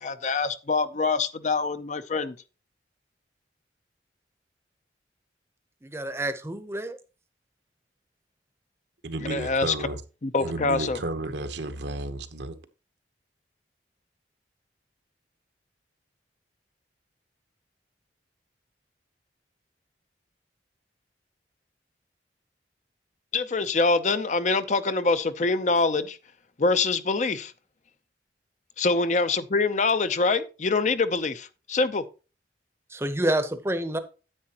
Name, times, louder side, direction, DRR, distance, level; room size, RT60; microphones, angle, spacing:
voice 1, 0.0-2.4 9.3-9.7 10.2-11.0 23.3-26.2 26.6-27.5 28.8-32.0, left 3 dB, 40° left, 0.5 m, -25 dB
voice 2, 5.8-7.0 32.9-34.0, right 1 dB, 15° right, 0.7 m, -28 dB
voice 3, 9.0-10.0 10.4-12.6, right 2 dB, 70° right, 1.0 m, -33 dB
9.7 x 8.6 x 2.9 m
head